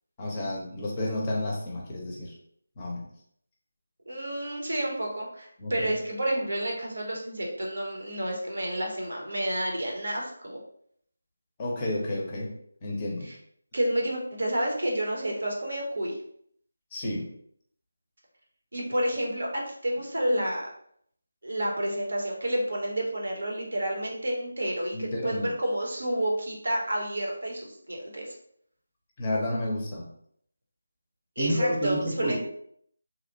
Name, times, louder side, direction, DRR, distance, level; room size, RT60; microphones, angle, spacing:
voice 1, 0.2-2.3 2.8-3.1 5.6-6.0 11.6-12.5 12.8-13.3 16.9-17.3 24.9-25.5 29.2-30.1 31.4-32.4, left 1 dB, 25° left, -2 dB, 0.5 m, -30 dB
voice 2, 4.1-10.6 13.2-13.3 13.7-16.2 18.7-20.7 21.4-28.3 31.4-32.4, right 1 dB, 60° right, -1 dB, 0.7 m, -30 dB
2.7 x 2.1 x 2.6 m, 0.66 s
figure-of-eight pair, 160°, 0 cm